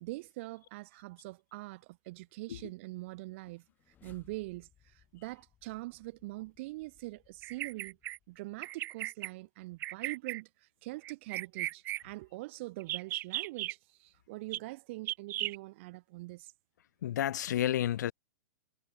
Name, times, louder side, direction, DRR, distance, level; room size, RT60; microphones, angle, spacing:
voice 1, 0.0-3.6 4.0-8.0 8.3-10.5 10.8-16.5, right 21 dB, 40° right, 0.8 m, -43 dB
sound 1, 3.4-8.7, left 10 dB, 20° left, 4.1 m, -66 dB
Bird vocalization bird call bird song, 7.4-8.2 8.6-9.3 9.8-10.4 11.0-12.0 12.8-13.7 14.5-14.6 15.1-15.6, right 15 dB, 20° right, 0.5 m, -36 dB
voice 2, 17.0-18.1, left 11 dB, 75° left, 0.4 m, -30 dB
hypercardioid pair, 155°, 10 cm